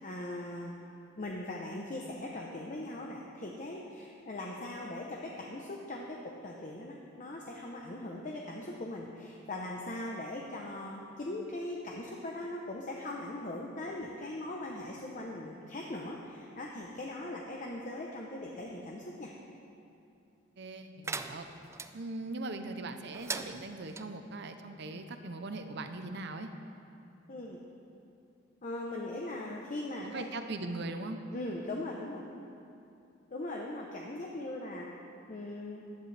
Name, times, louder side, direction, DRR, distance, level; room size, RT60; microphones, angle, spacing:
voice 1, 0.0-0.7 1.2-19.3 27.3-27.6 28.6-30.2 31.3-32.2 33.3-34.9 35.3-35.9, left 1 dB, 40° left, -1 dB, 0.8 m, -40 dB
voice 2, 20.6-21.5 21.9-26.5 30.0-31.2, right 2 dB, 60° right, 7 dB, 0.7 m, -40 dB
sound 1, 21.0-21.9 23.1-24.1, right 4 dB, 15° right, 0.3 m, -39 dB
15.0 x 10.5 x 3.4 m, 2.7 s
head